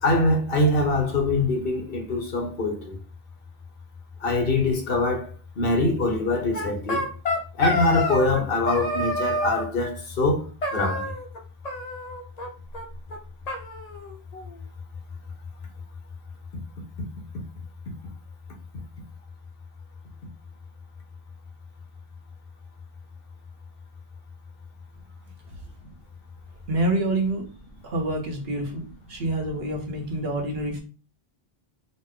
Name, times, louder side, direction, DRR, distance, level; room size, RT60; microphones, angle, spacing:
voice 1, 0.0-3.0 4.2-7.0 7.6-11.1, left 2 dB, 65° left, 1.1 m, -24 dB
sound 1, 6.5-8.4 8.7-9.7 10.6-11.4 11.6-12.5 12.7-12.8 13.1-13.2 13.5-14.5, left 1 dB, 45° left, 0.8 m, -28 dB
voice 2, 26.7-27.5 27.8-30.8, right 1 dB, 70° right, 1.1 m, -27 dB
4.1 x 2.1 x 3.7 m
omnidirectional pair, 1.1 m